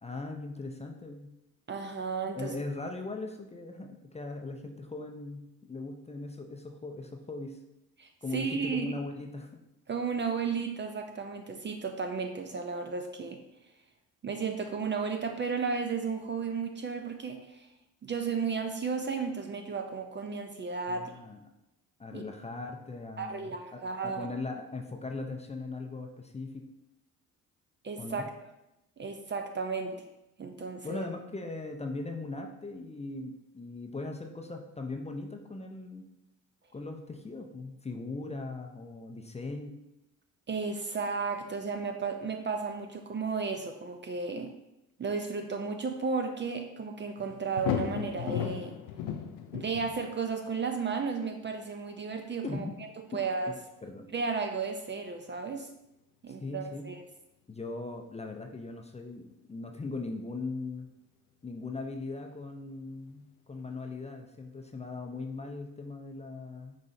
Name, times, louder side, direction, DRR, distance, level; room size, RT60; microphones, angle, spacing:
voice 1, 0.0-1.3 2.3-7.6 8.2-9.6 20.9-21.4 22.0-26.6 28.0-28.2 30.8-36.0 36.7-39.7 52.4-52.7 53.8-54.1 56.3-56.9 57.5-60.9 61.4-66.8, left 3 dB, 20° left, 3 dB, 0.5 m, -39 dB
voice 2, 1.7-2.5 8.0-9.0 9.9-13.4 14.2-17.7 18.0-21.1 22.1-22.2 23.2-24.3 27.8-28.3 29.0-30.0 30.4-31.1 40.5-44.5 45.0-48.8 49.5-52.7 53.1-53.5 54.1-55.7 56.2-57.0, right 5 dB, 30° right, 5 dB, 0.5 m, -34 dB
sound 1, 47.2-50.3 51.5-51.6 63.6-63.7, left 9 dB, 85° left, 0.5 m, -35 dB
5.4 x 3.1 x 2.6 m, 0.90 s
supercardioid pair, 65°, 37 cm